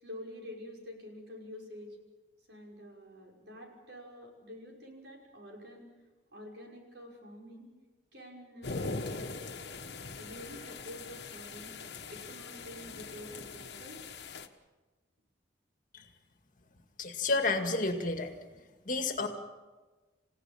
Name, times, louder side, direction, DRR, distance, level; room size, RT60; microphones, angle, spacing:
voice 1, 0.0-2.0 2.5-5.9 6.3-7.7 8.1-9.0 10.2-11.8 12.1-14.1, left 1 dB, 70° right, 0 dB, 5.9 m, -48 dB
sound 1, 8.6-14.5, left 3 dB, 65° left, 1.4 m, -41 dB
voice 2, 17.0-18.3 18.9-19.3, left 3 dB, 45° left, 5 dB, 2.1 m, -30 dB
29.0 x 16.5 x 7.3 m, 1.2 s
head